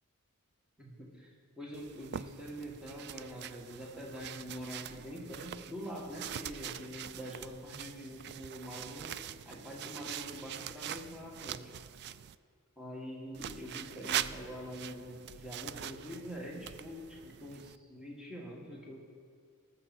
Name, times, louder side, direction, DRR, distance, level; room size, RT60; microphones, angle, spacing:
voice 1, 0.8-1.3 1.6-11.7 12.8-19.1, equal, 5° right, -3 dB, 1.7 m, -45 dB
sound 1, 1.7-12.4 13.3-17.8, right 10 dB, 50° right, 0.3 m, -43 dB
19.0 x 7.2 x 4.3 m, 2.1 s
head